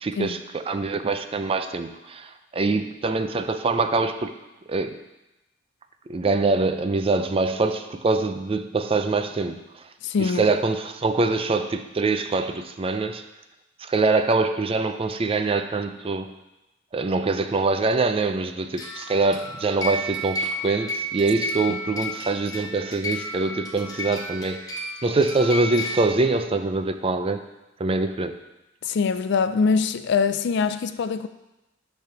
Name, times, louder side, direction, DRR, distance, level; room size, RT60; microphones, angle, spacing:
voice 1, 0.0-4.3 4.7-5.0 6.1-9.6 10.2-13.2 13.8-16.3 16.9-24.6 25.0-27.4 27.8-28.3, right 3 dB, 30° right, 0.4 m, -24 dB
voice 2, 10.0-10.4 21.7-21.8 28.8-31.3, left 5 dB, 60° left, 0.4 m, -23 dB
sound 1, 18.7-26.1, equal, 20° left, 0.9 m, -32 dB
9.4 x 3.4 x 5.8 m
head